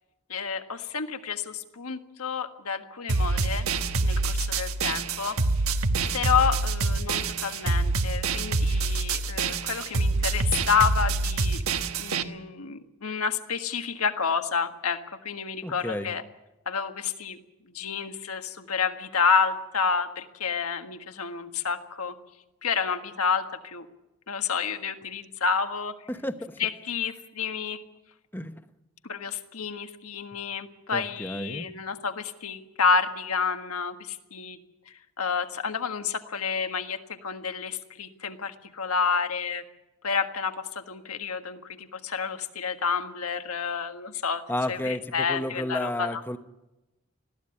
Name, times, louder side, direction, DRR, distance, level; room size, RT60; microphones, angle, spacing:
voice 1, 0.3-3.7 4.0-5.4 6.1-11.6 12.0-16.2 16.6-17.4 17.7-22.1 22.6-23.9 24.3-25.9 26.6-27.8 29.0-34.6 35.2-39.6 40.0-46.2, left 6 dB, 85° left, 7 dB, 1.6 m, -29 dB
sound 1, 3.1-12.2, right 3 dB, 80° right, 1.2 m, -26 dB
voice 2, 15.6-16.1 26.1-26.6 28.3-28.6 30.9-31.7 44.5-46.4, left 1 dB, 10° left, 9 dB, 1.0 m, -32 dB
20.5 x 15.0 x 9.8 m, 0.96 s
head